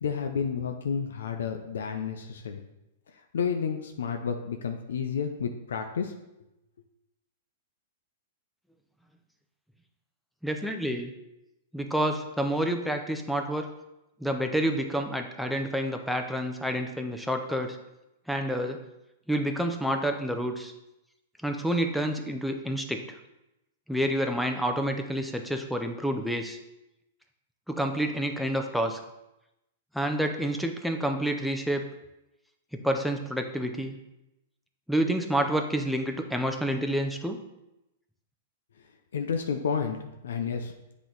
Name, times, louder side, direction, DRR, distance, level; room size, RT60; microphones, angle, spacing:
voice 1, 0.0-2.6 3.3-6.1 39.1-40.0 40.2-40.7, left 6 dB, 90° left, 4 dB, 0.6 m, -30 dB
voice 2, 10.4-11.1 11.7-13.7 14.2-17.8 18.3-18.8 19.3-20.7 21.4-23.0 23.9-26.6 27.7-29.0 29.9-31.8 32.8-34.0 34.9-37.4, right 1 dB, ahead, 4 dB, 0.5 m, -28 dB
8.2 x 3.0 x 3.9 m, 0.91 s
hypercardioid pair, 150°, 0 cm